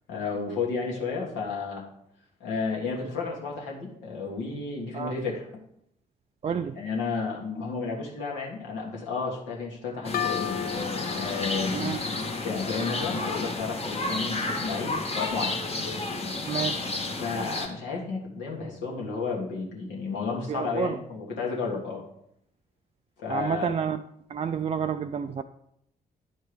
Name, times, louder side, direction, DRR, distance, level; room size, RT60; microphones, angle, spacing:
voice 1, 0.1-1.8 2.4-5.5 6.7-10.6 11.1-15.6 17.2-22.0 23.2-23.7, left 4 dB, 65° left, -2 dB, 1.7 m, -32 dB
voice 2, 6.4-6.8 11.7-12.0 16.5-16.9 20.5-21.0 23.3-24.0 24.3-25.4, right 7 dB, 30° right, 8 dB, 0.4 m, -29 dB
sound 1, 10.0-17.7, left 3 dB, 30° left, 1.3 m, -31 dB
sound 2, 10.1-13.7, left 10 dB, 50° left, 0.4 m, -36 dB
10.5 x 4.5 x 4.9 m, 0.74 s
figure-of-eight pair, 40°, 20 cm